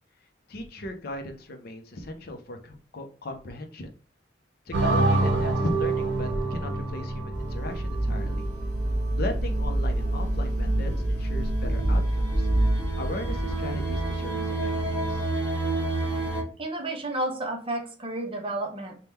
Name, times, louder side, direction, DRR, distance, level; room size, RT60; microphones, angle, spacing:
voice 1, 0.5-3.9 4.7-8.5 9.1-12.5 13.0-15.3, left 1 dB, 55° left, 5 dB, 0.6 m, -37 dB
sound 1, 4.7-11.9, right 2 dB, 65° right, 0.8 m, -28 dB
sound 2, 7.3-16.4, right 1 dB, 10° left, 1.3 m, -27 dB
voice 2, 16.6-19.0, right 1 dB, 30° right, 3 dB, 0.7 m, -31 dB
3.5 x 2.2 x 4.2 m, 0.40 s
head